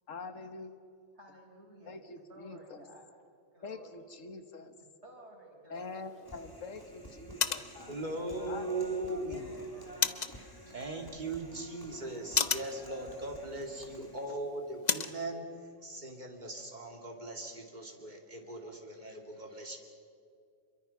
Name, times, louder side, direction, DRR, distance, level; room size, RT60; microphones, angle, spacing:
voice 1, 0.1-0.8 1.9-2.8 3.6-4.7 5.7-7.7 8.5-9.4, left 3 dB, 90° left, 9 dB, 1.8 m, -45 dB
voice 2, 1.1-2.0 2.3-3.1 3.5-3.9 5.0-6.5 7.7-9.8, right 1 dB, 60° right, -1 dB, 5.4 m, -55 dB
sound 1, 5.7-15.2, left 6 dB, 40° left, 0.8 m, -38 dB
Human voice, 6.2-14.3, equal, 15° left, 2.9 m, -51 dB
voice 3, 7.9-9.5 10.7-19.8, right 2 dB, 35° right, 2 dB, 2.8 m, -39 dB
27.0 x 23.0 x 5.9 m, 2.3 s
omnidirectional pair, 1.3 m